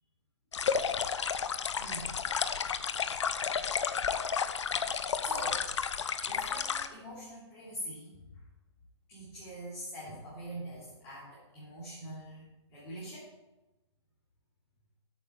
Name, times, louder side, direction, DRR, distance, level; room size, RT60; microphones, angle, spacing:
sound 1, 0.5-6.9, left 6 dB, 85° left, 0.9 m, -32 dB
voice 1, 1.8-2.1 4.7-4.9 5.2-5.6 6.2-8.2 9.1-13.3, right 1 dB, 15° left, -10 dB, 3.3 m, -43 dB
10.0 x 8.7 x 4.8 m, 1.0 s
hypercardioid pair, 175°, 15 cm